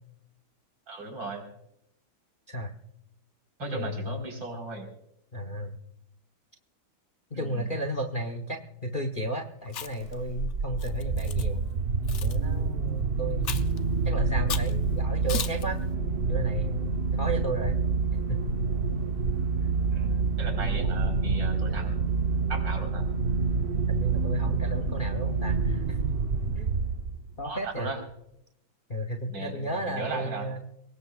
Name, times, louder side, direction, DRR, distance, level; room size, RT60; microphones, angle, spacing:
voice 1, 0.9-1.5 3.6-4.9 7.3-7.7 19.9-23.1 27.4-28.0 29.3-30.5, right 2 dB, 65° right, 2 dB, 4.8 m, -37 dB
voice 2, 3.6-4.1 5.3-5.8 7.3-11.6 12.2-13.7 14.0-15.8 16.3-17.8 18.3-18.5 23.9-26.0 26.5-26.8 27.4-27.9 28.9-30.6, right 1 dB, 35° left, 4 dB, 0.8 m, -33 dB
Chewing mastication, 9.7-10.1 10.8-11.4 12.1-12.4 13.4-13.8 14.5-14.7 15.3-15.6, left 8 dB, 80° left, 0.6 m, -35 dB
sound 1, 10.0-27.4, right 4 dB, 90° right, 0.5 m, -27 dB
23.5 x 20.0 x 2.3 m, 0.78 s
omnidirectional pair, 2.3 m